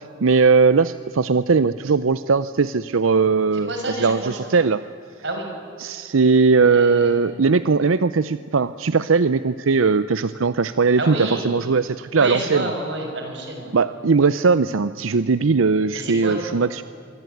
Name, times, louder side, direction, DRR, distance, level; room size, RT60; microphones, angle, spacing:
voice 1, 0.2-4.8 5.8-12.7 13.7-16.8, right 4 dB, 85° right, 14 dB, 0.6 m, -19 dB
voice 2, 3.7-4.4 5.2-5.5 6.6-7.1 11.0-11.4 12.1-13.7 15.9-16.6, right 2 dB, 60° right, 3 dB, 6.3 m, -28 dB
25.5 x 23.5 x 9.3 m, 2.5 s
head